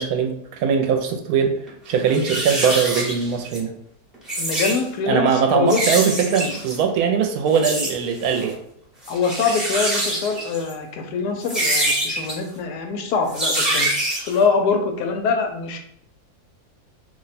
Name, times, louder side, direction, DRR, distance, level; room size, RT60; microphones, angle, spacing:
voice 1, 0.0-1.6 1.9-3.7 5.1-8.6, right 6 dB, 75° right, 4 dB, 1.0 m, -21 dB
sound 1, 1.6-1.7 2.1-3.6 4.1-4.8 5.7-6.8 7.5-7.9 8.2-8.5 9.0-10.7 11.4-12.3 13.3-14.4, right 1 dB, ahead, 0.5 m, -25 dB
voice 2, 4.4-5.9 9.1-13.9 14.3-15.8, left 5 dB, 90° left, 4 dB, 1.1 m, -23 dB
2.8 x 2.2 x 4.0 m, 0.70 s
omnidirectional pair, 1.6 m